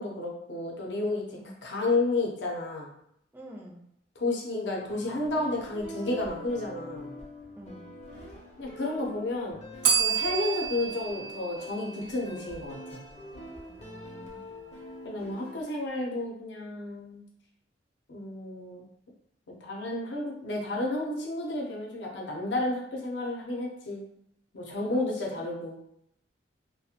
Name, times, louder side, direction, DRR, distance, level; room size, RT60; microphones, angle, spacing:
voice 1, 0.0-2.9 4.2-7.1 8.6-9.6 10.0-13.0 15.0-17.2 18.1-18.9 19.6-24.0 24.5-25.8, left 2 dB, 85° left, -1 dB, 0.6 m, -31 dB
voice 2, 3.3-3.8 7.6-7.8 13.7-14.5 24.9-25.4, right 1 dB, 10° right, -2 dB, 0.4 m, -47 dB
sound 1, 4.8-15.6, equal, 40° left, 0.5 m, -45 dB
Bell, 9.8-12.6, right 7 dB, 85° right, 0.6 m, -30 dB
2.4 x 2.1 x 2.8 m, 0.73 s
head